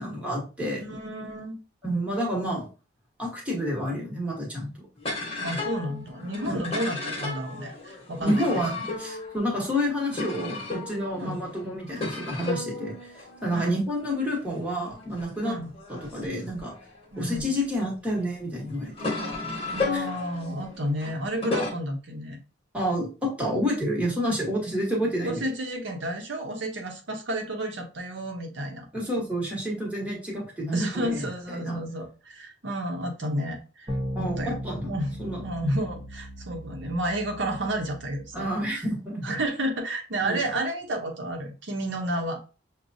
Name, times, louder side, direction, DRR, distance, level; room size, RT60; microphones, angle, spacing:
voice 1, 0.0-0.8 1.8-2.7 3.2-4.9 6.4-6.6 8.2-12.9 13.4-15.6 15.9-16.7 17.2-19.1 19.9-20.0 21.5-21.7 22.7-25.4 28.9-31.2 31.5-31.8 34.1-34.9 35.2-35.4 38.3-39.3 40.2-40.5, equal, 5° right, -4 dB, 1.1 m, -29 dB
voice 2, 0.8-1.6 5.4-8.4 11.2-11.4 13.5-13.8 15.4-15.7 17.1-17.5 19.7-22.4 25.2-28.9 30.7-33.9 34.2-34.6 34.9-35.1 35.4-38.5 38.8-38.9 39.2-42.4, right 1 dB, 65° right, 2 dB, 0.8 m, -31 dB
sound 1, 5.0-17.6 18.2-21.7, left 3 dB, 30° left, 1.1 m, -34 dB
sound 2, 33.9-38.7, equal, 25° right, 0.8 m, -37 dB
6.2 x 2.2 x 2.6 m, 0.34 s
head